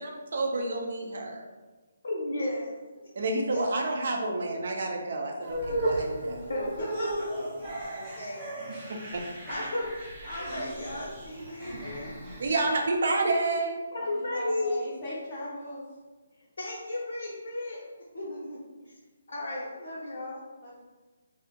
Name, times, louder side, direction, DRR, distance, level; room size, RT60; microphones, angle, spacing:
voice 1, 0.0-1.4 3.2-6.5 8.9-9.0 12.4-13.8, right 2 dB, 60° right, 1 dB, 0.5 m, -29 dB
voice 2, 2.0-2.7 3.5-3.9 6.5-8.4 9.5-12.2 13.9-14.9 16.6-17.8 18.1-18.6 18.8-18.9 19.3-20.4, left 1 dB, 75° left, -6 dB, 0.6 m, -34 dB
sound 1, 5.4-12.8, right 1 dB, 20° right, 0.7 m, -35 dB
voice 3, 14.0-15.8 20.6-20.8, left 1 dB, 30° left, -7 dB, 0.5 m, -39 dB
2.4 x 2.0 x 2.7 m, 1.2 s
figure-of-eight pair, 150°, 0 cm